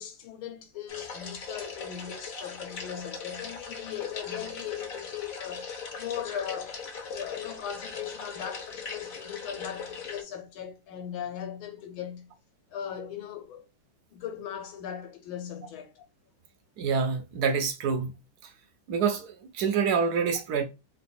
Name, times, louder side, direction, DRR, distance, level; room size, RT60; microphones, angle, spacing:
voice 1, 0.0-5.7 5.9-6.8 7.0-12.3 12.7-13.7 14.1-16.0, left 9 dB, 75° left, 1.7 m, -38 dB
sound 1, 0.9-10.2, left 5 dB, 55° left, 1.0 m, -40 dB
voice 2, 16.8-18.1 18.9-20.6, right 6 dB, 75° right, 0.9 m, -26 dB
3.7 x 2.6 x 4.2 m
omnidirectional pair, 2.3 m